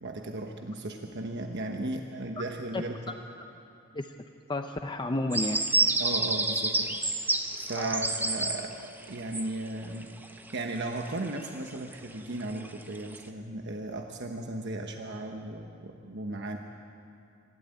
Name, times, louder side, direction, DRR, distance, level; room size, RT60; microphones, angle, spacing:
voice 1, 0.0-3.2 6.0-7.0 7.2-10.1 10.5-16.6, right 2 dB, 55° right, 3 dB, 1.1 m, -36 dB
voice 2, 4.5-5.6 7.8-8.0, left 2 dB, 20° left, 6 dB, 0.6 m, -31 dB
sound 1, 5.3-10.5 10.8-12.1 12.4-13.2, right 2 dB, 10° right, 0.9 m, -29 dB
25.5 x 12.5 x 9.1 m, 2.6 s
head